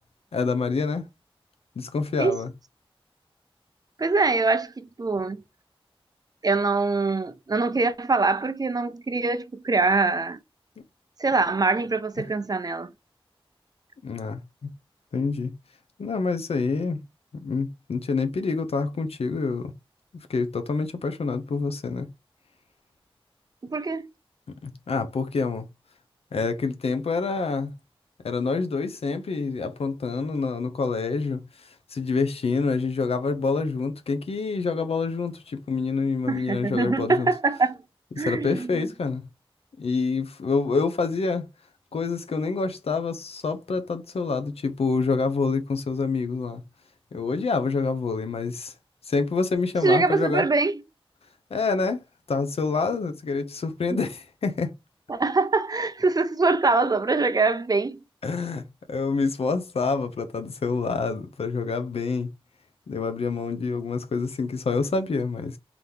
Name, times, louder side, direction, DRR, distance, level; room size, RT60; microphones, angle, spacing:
voice 1, 0.3-1.0 1.8-2.5 14.0-14.7 15.1-15.5 16.0-17.0 17.3-19.7 20.3-22.1 24.6-25.7 26.3-27.7 28.2-37.3 38.1-39.2 39.8-41.5 41.9-46.6 47.1-48.7 49.1-50.5 51.5-52.0 52.3-54.7 58.2-62.3 62.9-65.6, left 4 dB, 90° left, 0.7 m, -27 dB
voice 2, 4.0-5.4 6.4-10.4 11.2-12.9 23.6-24.1 36.3-37.8 38.2-38.7 49.8-50.8 53.9-54.0 55.1-58.0, right 3 dB, 40° right, 0.6 m, -23 dB
4.0 x 2.9 x 3.4 m
wide cardioid pair, 80°, 10 cm